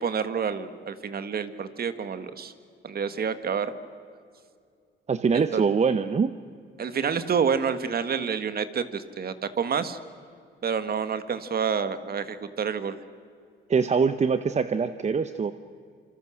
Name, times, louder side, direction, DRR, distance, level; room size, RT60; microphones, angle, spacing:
voice 1, 0.0-2.5 2.8-3.7 5.3-5.6 6.8-10.0 10.6-13.0, right 6 dB, 50° right, 11 dB, 1.7 m, -28 dB
voice 2, 5.1-6.3 13.7-15.5, right 5 dB, 35° right, 11 dB, 0.9 m, -23 dB
27.0 x 25.5 x 6.4 m, 2.3 s
cardioid pair, 90°, 20 cm